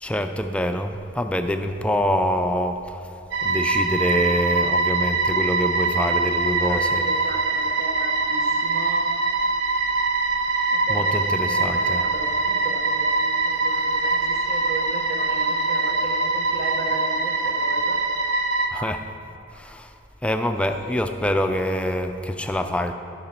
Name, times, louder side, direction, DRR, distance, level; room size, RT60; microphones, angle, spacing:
voice 1, 0.0-3.1 3.4-7.0 10.9-12.0 18.7-19.1 19.5-19.9 20.2-22.9, left 1 dB, 5° left, 6 dB, 0.4 m, -25 dB
sound 1, 3.3-18.7, right 3 dB, 80° right, 0.8 m, -23 dB
voice 2, 6.6-9.0 10.7-18.0 20.5-21.0, right 1 dB, 55° right, 1 dB, 1.1 m, -36 dB
14.0 x 6.0 x 4.4 m, 2.8 s
head